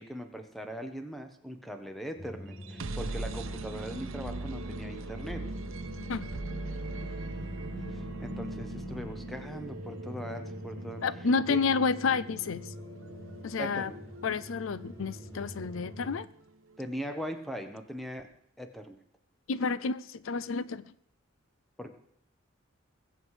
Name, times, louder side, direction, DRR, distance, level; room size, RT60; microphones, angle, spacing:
voice 1, 0.0-5.4 7.9-11.0 11.5-11.6 13.6-14.0 16.8-18.3 18.6-19.0 21.8-21.9, equal, ahead, 6 dB, 1.3 m, -40 dB
sound 1, 2.2-16.2, left 1 dB, 20° left, 1.3 m, -45 dB
sound 2, 2.5-16.4, right 2 dB, 75° right, 0.9 m, -41 dB
Bowed string instrument, 6.6-12.7, right 1 dB, 50° right, 1.8 m, -55 dB
voice 2, 11.0-12.6 13.4-13.9 14.2-16.3 19.5-20.8, left 5 dB, 75° left, 18 dB, 0.5 m, -30 dB
21.0 x 7.9 x 4.9 m, 0.71 s
head